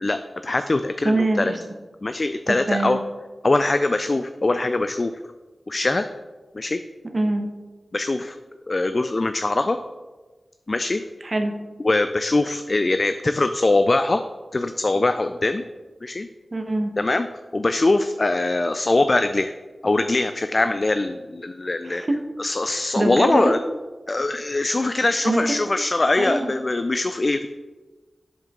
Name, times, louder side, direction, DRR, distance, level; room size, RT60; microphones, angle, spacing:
voice 1, 0.0-1.5 2.0-3.0 3.4-5.1 5.7-6.0 6.5-6.8 7.9-8.4 8.7-9.8 10.7-11.0 11.8-14.2 14.5-15.6 16.0-16.3 17.0-17.3 17.5-19.5 19.8-22.0 22.4-23.6 24.1-27.5, left 2 dB, 45° left, 9 dB, 0.3 m, -22 dB
voice 2, 1.0-1.6 2.5-3.0 7.1-7.5 11.2-11.5 16.5-16.9 21.8-22.2 22.7-23.6 25.2-25.4 26.2-26.5, right 2 dB, 45° right, 4 dB, 0.9 m, -23 dB
7.7 x 7.3 x 3.6 m, 1.3 s
wide cardioid pair, 75°, 0 cm